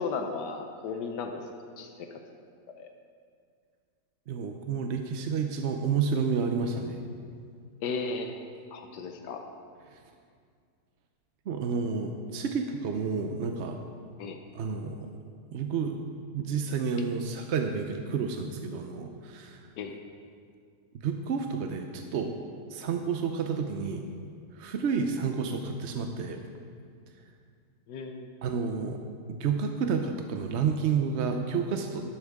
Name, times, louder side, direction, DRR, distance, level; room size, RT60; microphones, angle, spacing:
voice 1, 0.0-1.4 1.8-2.1 2.7-2.9 7.8-8.4 8.7-9.4 14.2-14.4 19.8-20.0 27.9-28.3, left 4 dB, 85° left, 5 dB, 1.4 m, -35 dB
voice 2, 4.3-7.0 9.9-10.0 11.5-13.8 14.5-15.1 15.5-16.0 16.3-19.6 21.0-22.4 22.7-24.0 24.5-26.4 28.4-29.0 29.3-32.0, right 5 dB, 60° right, 5 dB, 0.7 m, -30 dB
12.0 x 12.0 x 3.6 m, 2.2 s
omnidirectional pair, 1.8 m